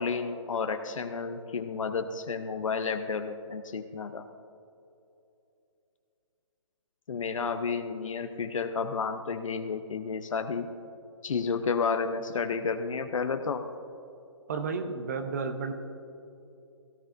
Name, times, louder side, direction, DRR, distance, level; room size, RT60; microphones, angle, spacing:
voice 1, 0.0-4.3 7.1-10.7 11.2-13.6, left 5 dB, 80° left, 6 dB, 0.8 m, -31 dB
voice 2, 14.5-15.7, right 4 dB, 30° right, 8 dB, 0.8 m, -32 dB
17.0 x 14.5 x 2.6 m, 2.7 s
hypercardioid pair, 170°, 16 cm